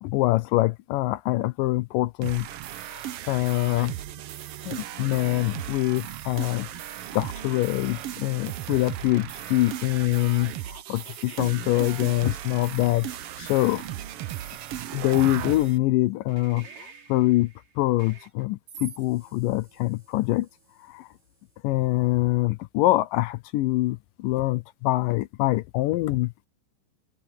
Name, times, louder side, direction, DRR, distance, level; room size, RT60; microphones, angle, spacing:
voice 1, 0.0-2.5 2.9-3.9 4.6-6.7 7.1-13.1 13.4-13.8 14.9-20.5 20.8-21.1 21.6-26.5, left 18 dB, 85° left, 2.3 m, -25 dB
sound 1, 2.2-15.8, right 12 dB, 85° right, 1.2 m, -36 dB
sound 2, 16.3-21.6, right 5 dB, 55° right, 4.3 m, -49 dB
open air
omnidirectional pair, 3.9 m